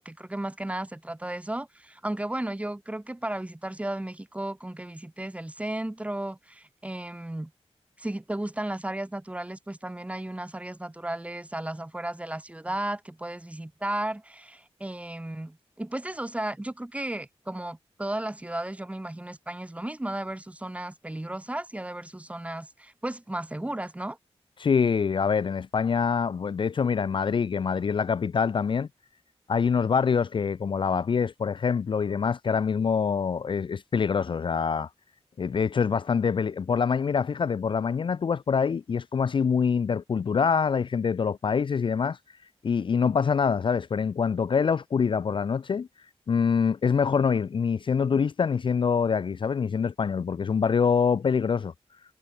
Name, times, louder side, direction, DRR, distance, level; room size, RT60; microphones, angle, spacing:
voice 1, 0.0-7.5 8.0-24.2, right 1 dB, 10° right, 1.8 m, -34 dB
voice 2, 24.6-28.9 29.5-34.9 35.4-42.2 42.6-45.9 46.3-51.7, left 6 dB, 50° left, 0.5 m, -25 dB
wide cardioid pair, 130°, 11 cm